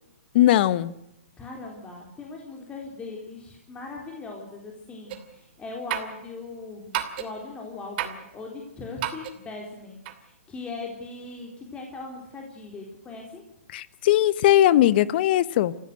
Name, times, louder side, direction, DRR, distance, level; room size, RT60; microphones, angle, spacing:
voice 1, 0.3-0.9 13.7-15.7, left 13 dB, 45° left, 18 dB, 1.1 m, -19 dB
voice 2, 1.4-13.4, left 3 dB, 15° left, 0 dB, 3.8 m, -39 dB
sound 1, 5.1-5.4 5.9-6.2 6.9-7.4 8.0-8.3 9.0-9.4 10.1-10.2, right 12 dB, 45° right, 2.8 m, -31 dB
27.5 x 15.0 x 7.9 m, 0.81 s
hypercardioid pair, 140°, 7 cm